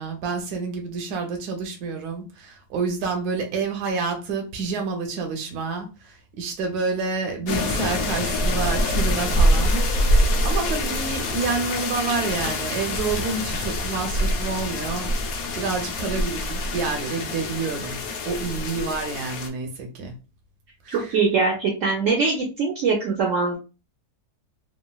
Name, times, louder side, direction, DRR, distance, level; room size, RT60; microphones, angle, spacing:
voice 1, 0.0-18.0 18.3-20.1 20.8-21.2, right 4 dB, 80° right, 1.2 m, -29 dB
sound 1, 7.5-19.5, left 1 dB, 70° left, 1.0 m, -25 dB
voice 2, 20.9-23.6, right 4 dB, 65° right, 0.9 m, -22 dB
3.1 x 2.3 x 2.2 m
omnidirectional pair, 1.7 m